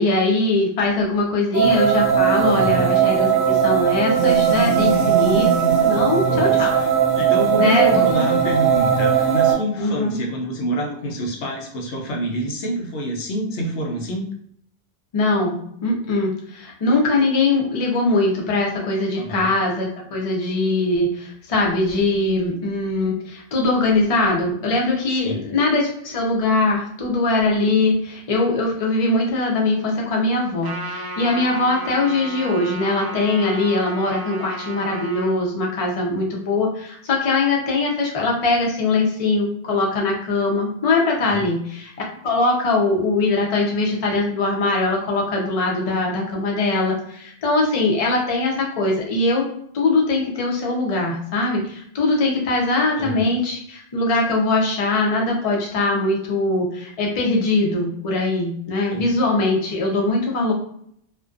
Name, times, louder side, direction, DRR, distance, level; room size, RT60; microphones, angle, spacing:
voice 1, 0.0-5.5 5.8-6.8 7.6-8.3 9.8-10.2 15.1-15.6 15.8-41.9 42.2-49.4 49.7-60.5, left 2 dB, 40° left, -2 dB, 0.6 m, -21 dB
sound 1, 1.5-9.5, right 8 dB, 80° right, 0.9 m, -18 dB
voice 2, 2.5-2.9 6.3-14.3 19.2-19.5 25.1-25.5 41.3-41.5 53.0-53.2 58.9-59.0, right 1 dB, 90° left, 1 dB, 0.9 m, -27 dB
Trumpet, 30.6-35.3, right 2 dB, 30° right, 0.5 m, -33 dB
2.5 x 2.1 x 2.3 m, 0.68 s
omnidirectional pair, 1.1 m